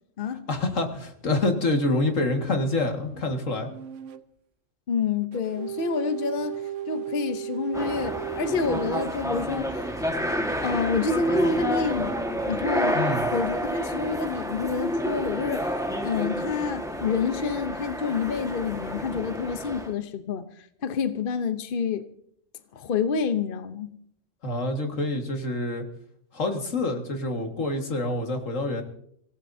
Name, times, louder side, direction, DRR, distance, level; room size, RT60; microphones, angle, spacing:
voice 1, 0.3-3.7 12.9-13.3 24.4-25.8 26.3-28.8, left 2 dB, 85° left, 2.3 m, -27 dB
sound 1, 2.0-4.2 5.3-9.1 9.9-10.8, right 11 dB, 80° right, 1.1 m, -37 dB
voice 2, 4.9-9.9 10.6-12.2 12.5-13.0 13.3-15.7 16.0-22.0 22.7-23.9, left 5 dB, 50° left, 1.0 m, -28 dB
sound 2, 7.7-19.9, equal, 5° right, 1.5 m, -29 dB
25.0 x 17.0 x 2.7 m
omnidirectional pair, 1.3 m